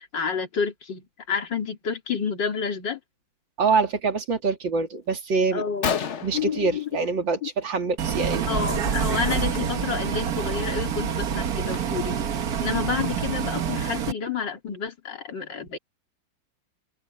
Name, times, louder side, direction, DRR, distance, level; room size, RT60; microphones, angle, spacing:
voice 1, 0.0-3.0 5.5-5.9 6.3-6.9 7.4-7.5 8.5-15.8, left 6 dB, 65° left, 3.7 m, -29 dB
voice 2, 3.6-5.6 6.2-8.5, right 4 dB, 75° right, 3.4 m, -25 dB
Gunshot gunfire, 5.5-5.6 5.8-7.4 7.8-8.1 8.4-8.6 9.4-9.6 10.1-10.2 10.6-12.2, left 7 dB, 45° left, 1.1 m, -32 dB
Bus, 8.0-14.1, right 7 dB, 55° right, 1.6 m, -27 dB
omnidirectional pair, 2.1 m